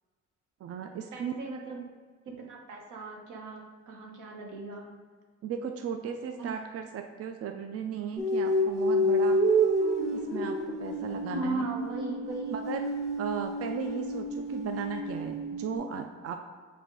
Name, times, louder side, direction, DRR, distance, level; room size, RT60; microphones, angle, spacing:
voice 1, 0.6-1.3 5.4-9.4 10.1-11.7 12.5-12.9 13.2-16.4, right 7 dB, 50° right, 5 dB, 0.5 m, -36 dB
voice 2, 1.1-1.8 2.2-4.9 6.4-6.5 11.3-12.6, right 3 dB, 90° right, 0 dB, 1.2 m, -40 dB
sound 1, 8.2-15.8, right 1 dB, 10° right, 1.6 m, -29 dB
6.7 x 3.4 x 4.7 m, 1.5 s
cardioid pair, 90°, 30 cm